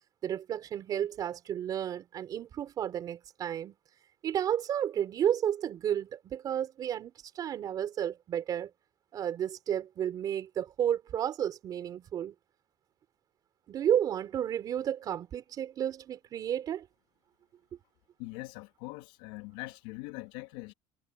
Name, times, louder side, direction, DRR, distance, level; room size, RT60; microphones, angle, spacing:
voice 1, 0.2-3.7 4.2-8.7 9.1-12.3 13.7-16.9, right 10 dB, 35° right, 3.9 m, -32 dB
voice 2, 18.2-20.7, left 22 dB, 90° left, 3.4 m, -42 dB
cardioid pair, 160°, 11 cm